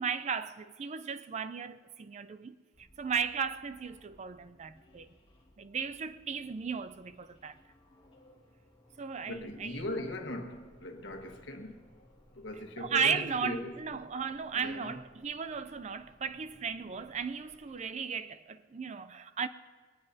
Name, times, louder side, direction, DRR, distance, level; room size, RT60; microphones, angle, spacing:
voice 1, 0.0-5.1 5.6-7.6 9.0-9.8 12.8-19.5, right 6 dB, 35° right, 0.4 m, -35 dB
sound 1, 2.7-17.9, left 1 dB, 30° left, 2.1 m, -62 dB
voice 2, 9.2-11.9 12.3-13.8 14.5-15.0, left 1 dB, 70° left, 1.4 m, -39 dB
21.0 x 18.5 x 2.7 m
head